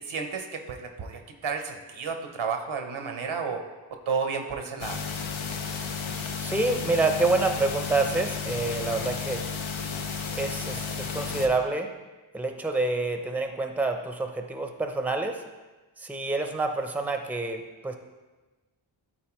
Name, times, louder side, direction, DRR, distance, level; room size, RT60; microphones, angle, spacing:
voice 1, 0.0-3.6 4.1-5.0, right 5 dB, 80° right, 5 dB, 0.9 m, -32 dB
sound 1, 4.8-11.5, left 5 dB, 80° left, 0.7 m, -33 dB
voice 2, 6.4-9.5 10.3-11.9 12.3-15.4 16.0-18.0, right 3 dB, 5° right, 5 dB, 0.6 m, -27 dB
12.5 x 4.1 x 3.0 m, 1.2 s
wide cardioid pair, 80°, 47 cm